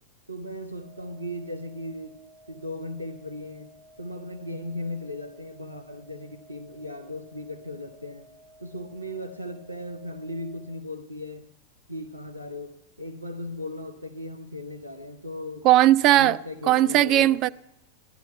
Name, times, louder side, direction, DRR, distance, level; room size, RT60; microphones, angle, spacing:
voice 1, 0.3-2.2 2.5-8.3 8.6-11.5 11.9-15.7 16.2-17.4, left 1 dB, 85° right, 1.0 m, -37 dB
sound 1, 0.7-10.7, right 1 dB, 55° right, 1.9 m, -55 dB
voice 2, 15.6-16.4 16.7-17.5, right 14 dB, 40° right, 0.4 m, -18 dB
16.5 x 12.0 x 4.5 m
figure-of-eight pair, 90°, 0 cm